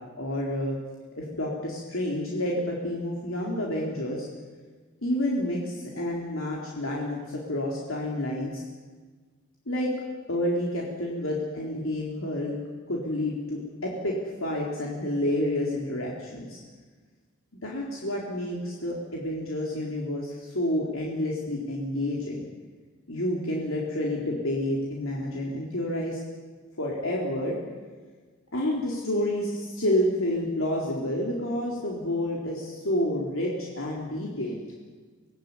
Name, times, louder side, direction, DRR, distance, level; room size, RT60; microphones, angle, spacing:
voice 1, 0.2-0.8 1.2-4.3 5.0-8.6 9.7-9.9 10.3-12.6 12.9-16.6 17.6-22.5 23.1-26.2 26.8-27.6 28.5-34.6, left 1 dB, 70° left, -3 dB, 4.0 m, -29 dB
26.0 x 18.5 x 9.8 m, 1.4 s
head